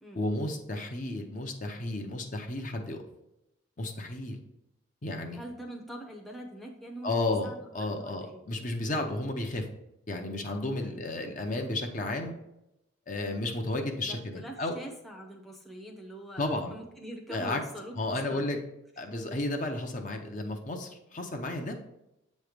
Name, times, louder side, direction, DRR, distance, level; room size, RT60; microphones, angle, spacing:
voice 1, 0.1-3.0 3.8-4.4 5.0-5.4 7.0-9.6 10.1-12.3 13.1-14.8 16.4-16.8 17.3-17.6 18.0-18.6 19.0-21.7, left 2 dB, 40° left, 3 dB, 0.6 m, -33 dB
voice 2, 5.3-7.1 7.4-8.4 10.8-11.0 14.0-18.4, right 1 dB, ahead, -1 dB, 0.7 m, -44 dB
7.8 x 3.1 x 5.0 m, 0.87 s
head